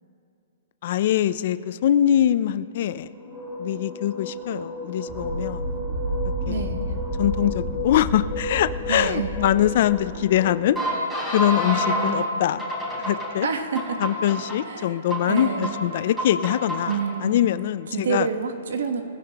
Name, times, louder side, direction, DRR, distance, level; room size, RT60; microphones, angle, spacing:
voice 1, 0.8-3.1 3.6-5.8 6.5-6.6 7.2-10.8 11.3-12.6 13.0-13.5 14.0-16.9 17.2-18.3, left 11 dB, 45° left, 14 dB, 0.4 m, -23 dB
sound 1, 3.1-12.1 12.6-13.3 13.8-14.6 15.1-15.7 16.2-17.0, left 1 dB, 5° right, 4.0 m, -31 dB
sound 2, 5.1-10.2, right 1 dB, 25° right, 3.3 m, -31 dB
voice 2, 6.5-7.0 8.9-9.3 11.8-12.4 13.4-14.0 14.6-15.0 15.3-15.8 16.9-17.5 17.9-19.0, right 5 dB, 75° right, 6 dB, 1.2 m, -28 dB
20.5 x 15.5 x 2.9 m, 2.6 s
hypercardioid pair, 165°, 0 cm